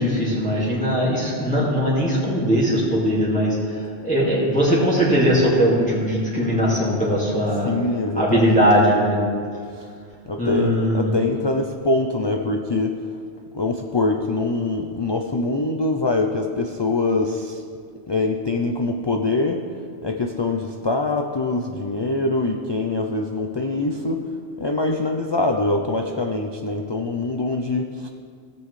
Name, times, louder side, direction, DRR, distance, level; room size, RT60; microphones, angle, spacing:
voice 1, 0.0-3.6 4.0-7.7 8.2-9.2 10.4-11.1, equal, 5° left, -7 dB, 2.0 m, -20 dB
voice 2, 7.6-8.7 9.7-9.9 10.3-13.1 13.5-17.6 18.1-19.7 20.0-28.1, left 2 dB, 45° left, 3 dB, 0.3 m, -24 dB
17.0 x 6.9 x 3.2 m, 2.1 s
omnidirectional pair, 1.2 m